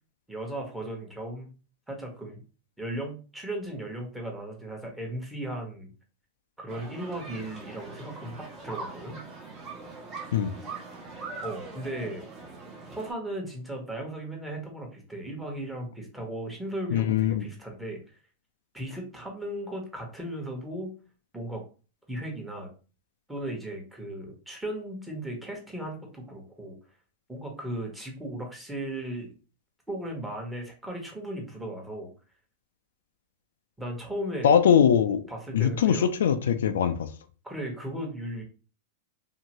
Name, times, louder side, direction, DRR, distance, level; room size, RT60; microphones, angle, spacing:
voice 1, 0.3-1.5 1.9-2.4 2.8-5.9 6.6-9.2 11.4-12.2 12.9-18.0 18.7-20.9 21.3-21.6 22.1-22.7 23.3-26.8 27.3-29.3 29.9-32.1 33.8-34.5 35.3-36.1 37.4-38.4, right 1 dB, 5° right, 1.0 m, -36 dB
sound 1, 6.7-13.1, right 3 dB, 25° right, 1.0 m, -41 dB
voice 2, 16.9-17.5 34.4-35.2 35.5-37.1, left 8 dB, 85° left, 0.3 m, -22 dB
2.7 x 2.5 x 2.9 m
hypercardioid pair, 125°, 0 cm